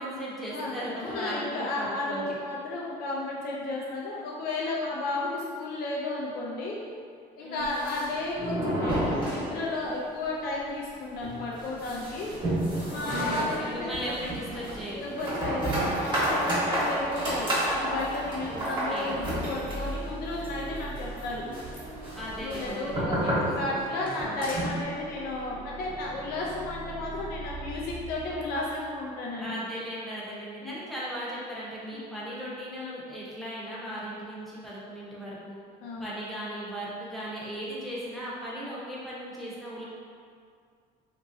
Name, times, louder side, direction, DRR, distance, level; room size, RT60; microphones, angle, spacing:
voice 1, 0.0-2.4 7.4-7.8 12.9-15.3 18.5-18.6 18.9-19.2 22.1-23.4 29.4-35.6 36.0-39.8, equal, ahead, -8 dB, 0.8 m, -37 dB
voice 2, 1.0-6.8 7.4-12.3 12.7-14.1 14.9-21.4 22.4-29.6 30.6-30.8 31.9-32.0 35.8-36.1, left 2 dB, 65° left, -4 dB, 0.4 m, -33 dB
sound 1, 7.6-10.0 10.2-10.3 10.7-10.8 11.2-24.8, right 1 dB, 30° right, 1.0 m, -31 dB
sound 2, 19.4-29.2, right 2 dB, 85° right, 0.6 m, -41 dB
2.9 x 2.6 x 2.6 m, 2.2 s
cardioid pair, 110°, 17 cm